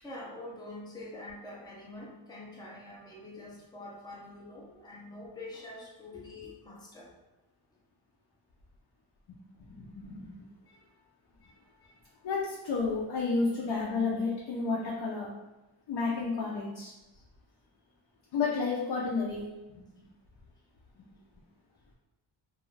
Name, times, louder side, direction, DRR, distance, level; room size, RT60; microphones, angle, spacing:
voice 1, 0.0-7.1 10.7-10.9 11.4-12.0 17.1-17.2, left 2 dB, 10° left, -4 dB, 0.4 m, -46 dB
voice 2, 9.8-10.3 12.2-15.3 15.9-16.9 18.3-19.8 21.0-21.1, left 4 dB, 60° left, -4 dB, 0.5 m, -31 dB
2.4 x 2.3 x 3.1 m, 1.0 s
wide cardioid pair, 155°, 49 cm